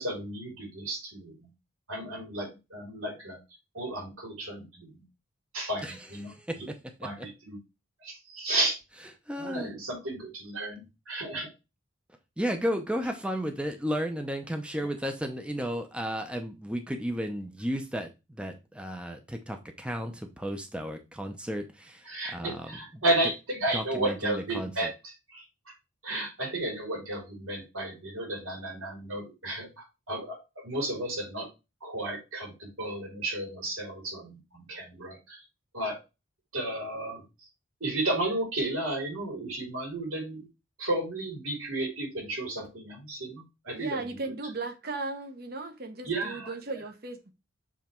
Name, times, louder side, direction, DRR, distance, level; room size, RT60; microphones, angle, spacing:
voice 1, 0.0-1.4 1.9-3.4 3.7-5.0 5.5-6.7 7.0-7.6 8.0-8.8 9.3-11.5 14.8-14.9 22.0-25.4 26.0-31.5 31.8-35.4 35.7-36.0 36.5-37.2 37.8-40.5 40.8-44.0 46.0-46.5, right 2 dB, 90° right, 3.7 m, -33 dB
voice 2, 6.3-6.7 7.2-7.3 9.3-9.7 12.4-23.0 23.7-24.9, equal, 5° right, 0.6 m, -33 dB
voice 3, 43.7-47.3, right 3 dB, 45° right, 1.0 m, -36 dB
7.3 x 3.5 x 4.4 m
head